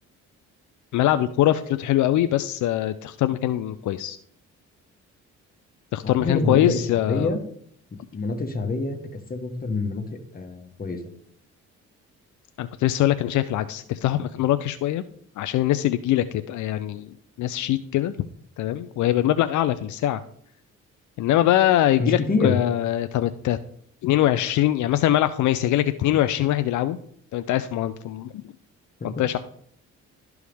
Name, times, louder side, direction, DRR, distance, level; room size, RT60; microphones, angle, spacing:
voice 1, 0.9-4.2 5.9-7.3 12.6-15.0 15.4-17.1 17.4-18.1 18.6-20.2 21.2-23.6 24.0-27.0 27.3-28.3 29.0-29.4, left 13 dB, 75° left, 11 dB, 0.5 m, -22 dB
voice 2, 6.0-7.4 8.1-9.0 9.3-11.0 22.0-22.6 29.0-29.1, left 3 dB, 30° left, 5 dB, 1.4 m, -26 dB
12.5 x 4.7 x 3.5 m, 0.64 s
cardioid pair, 90°, 30 cm